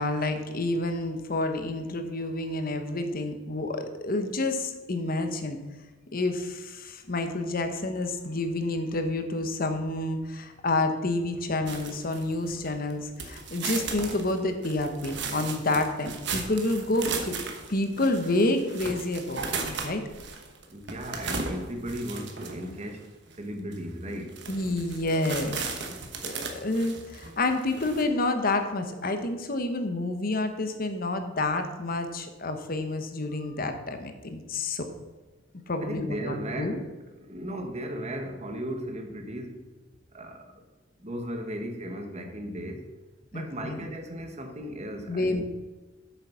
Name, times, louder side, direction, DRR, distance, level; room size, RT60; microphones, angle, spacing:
voice 1, 0.0-5.6 6.1-17.4 17.7-20.0 24.5-34.8 35.7-36.8 43.3-43.9 45.1-45.4, left 2 dB, 50° left, 7 dB, 1.1 m, -29 dB
sound 1, 11.7-12.9 13.2-22.8 23.3-23.4 23.7-23.8 24.2-28.0, right 4 dB, 65° right, 1.3 m, -36 dB
voice 2, 20.7-24.4 35.8-36.9 37.2-39.6 40.1-40.6 41.0-42.9 43.3-45.4, equal, 35° right, 4 dB, 1.3 m, -36 dB
7.9 x 7.0 x 5.6 m, 1.2 s
head